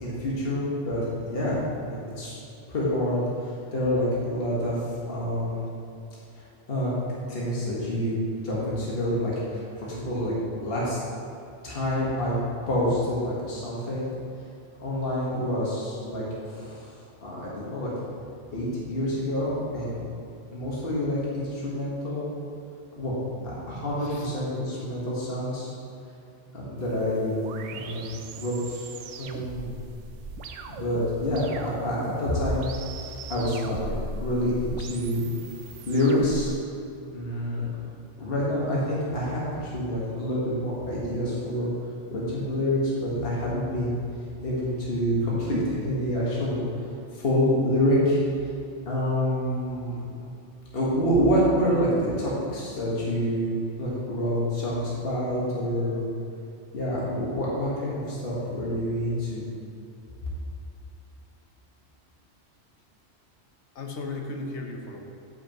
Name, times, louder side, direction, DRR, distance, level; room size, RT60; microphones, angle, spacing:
voice 1, 0.0-1.0 1.3-2.3 2.7-4.8 5.1-5.6 6.7-6.9 7.3-10.3 10.6-11.0 11.6-12.3 12.7-14.1 14.8-17.0 17.2-17.9 18.5-20.0 20.5-22.3 23.0-23.2 23.4-25.7 26.5-27.4 27.7-28.9 29.2-29.8 30.7-32.7 33.3-33.9 34.2-35.2 35.9-36.5 37.1-37.7 38.2-41.7 42.1-44.0 44.4-46.8 47.1-48.2 48.9-50.0 50.7-53.5 53.8-56.0 56.7-59.4, equal, 55° left, -7 dB, 1.6 m, -27 dB
voice 2, 24.0-24.3 33.2-33.5 63.7-65.0, left 2 dB, 75° left, 2 dB, 1.1 m, -36 dB
sound 1, 26.8-36.5, right 3 dB, 90° right, 0.9 m, -39 dB
12.5 x 5.4 x 3.0 m, 2.7 s
omnidirectional pair, 1.2 m